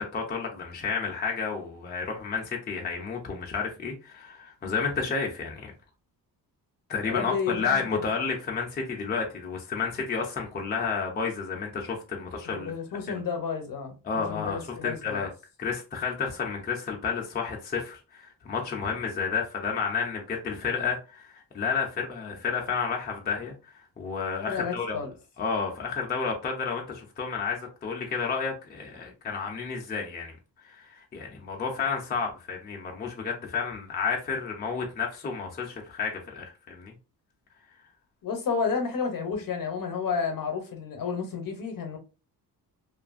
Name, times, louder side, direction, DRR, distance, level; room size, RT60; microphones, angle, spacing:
voice 1, 0.0-5.7 6.9-12.7 14.0-15.3 15.6-25.0 25.4-30.3 30.6-36.9, left 5 dB, 25° left, 0.4 m, -31 dB
voice 2, 7.0-8.0 12.4-15.2 24.5-25.1 38.2-42.0, left 5 dB, 55° left, 0.7 m, -31 dB
2.5 x 2.4 x 2.4 m
wide cardioid pair, 165°, 39 cm